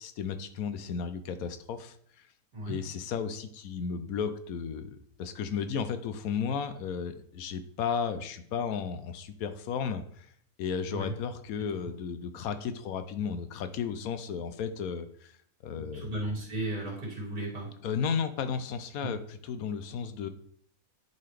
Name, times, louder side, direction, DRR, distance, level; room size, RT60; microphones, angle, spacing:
voice 1, 0.0-2.0 2.7-10.3 10.6-15.3 15.6-16.1 17.8-20.3, left 6 dB, 75° left, 10 dB, 1.1 m, -34 dB
voice 2, 15.7-17.8 19.0-19.2, right 1 dB, 80° right, -4 dB, 3.0 m, -35 dB
10.5 x 4.1 x 3.3 m, 0.62 s
omnidirectional pair, 1.6 m